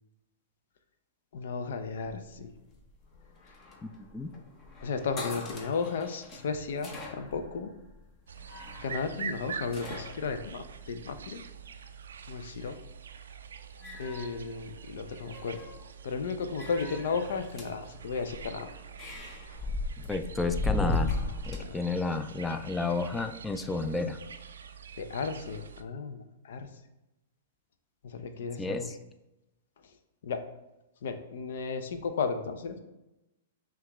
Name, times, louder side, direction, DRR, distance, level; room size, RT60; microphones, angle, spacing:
voice 1, 1.3-2.5 4.8-7.7 8.8-11.4 12.3-12.7 14.0-15.6 16.0-18.7 21.6-21.8 25.0-26.7 28.0-28.9 30.2-30.4 31.0-32.8, left 5 dB, 70° left, 8 dB, 0.5 m, -34 dB
sound 1, 1.8-11.6 12.9-13.3 13.6-15.0 15.2-15.9 16.6-21.6, left 2 dB, 30° left, 0.7 m, -38 dB
voice 2, 3.8-4.3 20.1-21.1 21.5-24.2 28.6-29.0, left 3 dB, 10° left, 8 dB, 0.3 m, -31 dB
sound 2, 8.3-25.8, right 7 dB, 85° right, 0.3 m, -45 dB
5.6 x 2.4 x 3.0 m, 0.96 s
hypercardioid pair, 135°, 0 cm